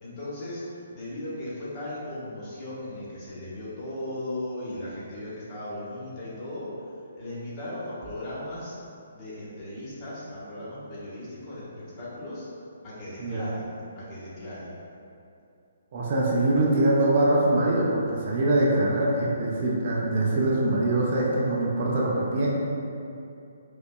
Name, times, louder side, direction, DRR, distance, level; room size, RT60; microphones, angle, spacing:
voice 1, 0.0-6.7 7.2-8.8 9.1-12.5 12.8-13.7 14.0-14.7, left 1 dB, 25° left, -9 dB, 1.1 m, -37 dB
voice 2, 15.9-22.5, right 1 dB, 45° right, -4 dB, 0.6 m, -23 dB
4.8 x 2.1 x 2.3 m, 2.6 s
hypercardioid pair, 140°, 0 cm